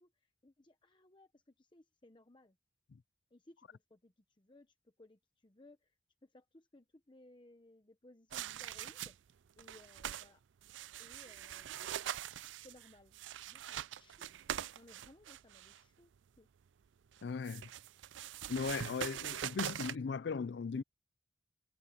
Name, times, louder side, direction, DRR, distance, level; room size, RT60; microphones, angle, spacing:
voice 1, 0.0-2.6 3.3-6.0 6.2-9.2 9.6-10.4 11.0-11.9 12.6-13.2 13.4-16.1 16.4-16.5, left 1 dB, 25° left, 0.9 m, -62 dB
sound 1, 8.3-9.3 9.6-10.3 10.6-15.8 17.1-20.0, right 10 dB, 75° right, 0.4 m, -43 dB
voice 2, 17.2-17.7 18.5-20.8, left 5 dB, 60° left, 0.4 m, -38 dB
head